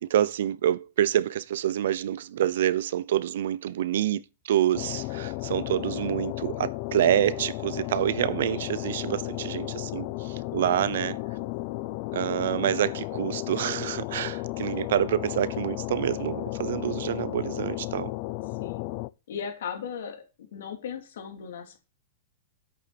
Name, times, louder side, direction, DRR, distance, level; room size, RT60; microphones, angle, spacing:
voice 1, 0.0-11.2 12.1-18.1, right 11 dB, 70° right, 0.7 m, -27 dB
sound 1, 4.7-19.1, left 20 dB, 40° left, 0.5 m, -34 dB
voice 2, 18.6-19.0 19.3-20.2 20.5-21.8, left 7 dB, 75° left, 3.1 m, -37 dB
10.5 x 8.2 x 4.2 m
supercardioid pair, 165°, 0 cm